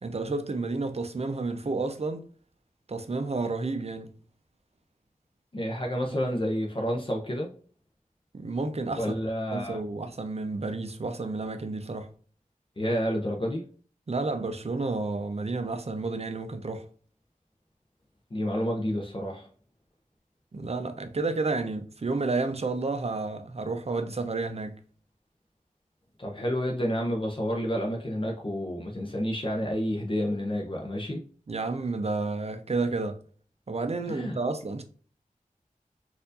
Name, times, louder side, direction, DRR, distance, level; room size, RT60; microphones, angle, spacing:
voice 1, 0.0-2.2 2.9-4.1 8.3-9.2 9.5-12.1 14.1-16.8 20.5-24.8 31.5-33.2 33.7-34.8, right 3 dB, 45° right, 0.6 m, -31 dB
voice 2, 5.5-7.5 9.0-9.8 12.8-13.6 18.3-19.5 26.2-31.2 34.1-34.4, equal, 35° left, 0.7 m, -29 dB
4.4 x 2.6 x 2.5 m
wide cardioid pair, 70°, 14 cm